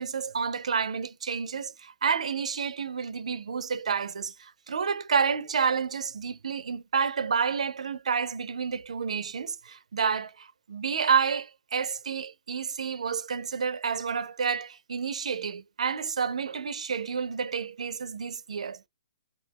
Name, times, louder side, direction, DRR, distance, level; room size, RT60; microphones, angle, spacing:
voice 1, 0.0-18.9, right 6 dB, 85° right, 0.4 m, -29 dB
2.3 x 2.2 x 2.7 m
hypercardioid pair, 155°, 3 cm